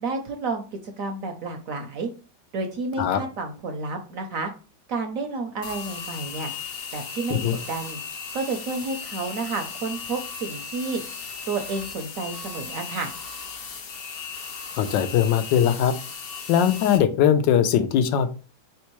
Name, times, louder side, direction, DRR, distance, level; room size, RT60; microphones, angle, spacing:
voice 1, 0.0-2.1 2.5-4.5 4.9-6.5 6.9-7.4 7.7-8.0 8.3-11.0 11.5-13.1, right 3 dB, 70° right, 5 dB, 0.8 m, -30 dB
sound 1, 5.6-17.0, left 6 dB, 70° left, 0.5 m, -36 dB
voice 2, 14.8-15.9 16.5-18.3, left 9 dB, 90° left, 9 dB, 1.3 m, -20 dB
4.5 x 3.5 x 3.0 m, 0.35 s
omnidirectional pair, 1.9 m